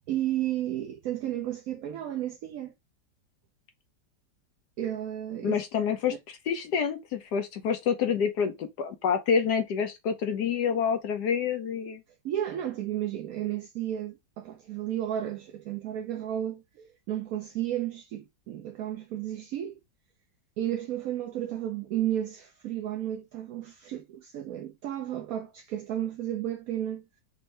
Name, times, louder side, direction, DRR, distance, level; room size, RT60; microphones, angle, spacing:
voice 1, 0.1-2.7 4.8-5.6 6.0-6.2 12.2-19.8 20.6-27.0, right 11 dB, 65° right, 0.9 m, -33 dB
voice 2, 5.4-12.0, left 7 dB, 70° left, 1.2 m, -28 dB
5.3 x 2.6 x 3.2 m
omnidirectional pair, 2.0 m